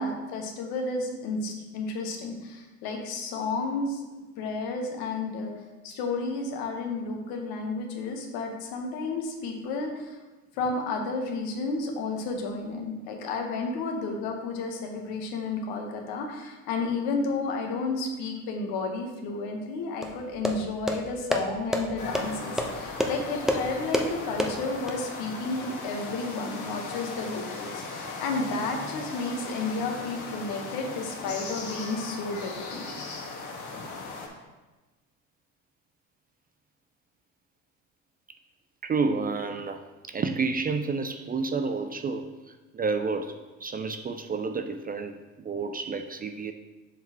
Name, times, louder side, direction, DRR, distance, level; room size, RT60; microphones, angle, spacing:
voice 1, 0.0-4.0 4.4-5.5 5.8-10.2 10.6-32.8, left 3 dB, 70° left, 1.3 m, -32 dB
sound 1, 20.0-25.0, equal, ahead, 0.8 m, -30 dB
sound 2, 22.0-34.3, left 3 dB, 50° left, 1.6 m, -38 dB
voice 2, 38.8-46.5, right 4 dB, 25° right, 0.4 m, -30 dB
7.3 x 5.6 x 3.0 m
hypercardioid pair, 65°, 39 cm